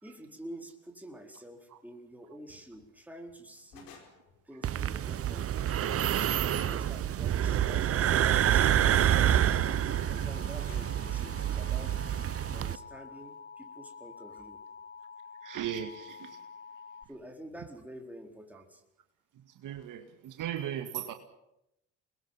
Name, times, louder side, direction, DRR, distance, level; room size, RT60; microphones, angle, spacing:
voice 1, 0.0-4.0 4.4-5.9 6.6-9.1 10.0-12.0 12.5-14.7 17.1-18.8, right 1 dB, 5° right, 3 dB, 4.2 m, -48 dB
sound 1, 2.5-2.9 3.3-4.4 5.2-5.4 5.6-7.5 8.4-9.8 10.7-11.7, left 6 dB, 65° left, 5.0 m, -55 dB
sound 2, 4.6-12.8, right 10 dB, 35° right, 1.0 m, -27 dB
Alarm, 8.9-17.0, left 5 dB, 25° left, 1.5 m, -48 dB
voice 2, 15.4-16.4 19.6-21.1, right 10 dB, 55° right, 7 dB, 2.1 m, -37 dB
28.5 x 21.5 x 5.8 m, 0.86 s
hypercardioid pair, 70°, 39 cm